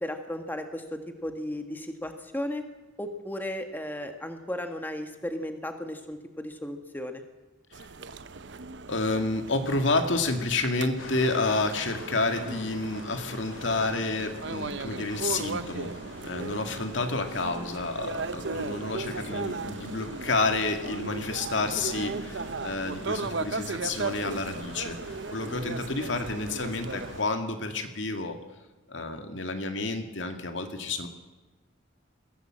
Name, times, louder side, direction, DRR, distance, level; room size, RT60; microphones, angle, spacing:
voice 1, 0.0-2.6 3.0-7.2, left 1 dB, 10° left, 6 dB, 1.6 m, -35 dB
sound 1, 7.7-27.2, right 3 dB, 60° right, 0.9 m, -37 dB
voice 2, 8.9-15.9 16.2-28.4 28.9-31.1, left 3 dB, 65° left, 6 dB, 2.2 m, -30 dB
sound 2, 11.0-27.3, left 2 dB, 85° left, 3.3 m, -45 dB
21.5 x 16.5 x 7.6 m, 1.2 s
head